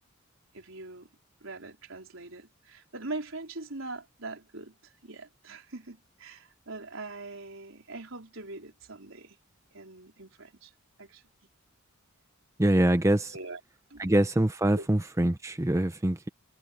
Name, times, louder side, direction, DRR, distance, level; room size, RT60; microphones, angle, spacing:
voice 1, 0.5-1.1 1.4-9.4 9.7-10.7 11.0-11.2 13.3-13.6 13.9-14.1 14.7-14.9, right 2 dB, 75° right, 4.1 m, -42 dB
voice 2, 12.6-13.4 14.0-16.3, right 1 dB, 15° right, 0.6 m, -24 dB
head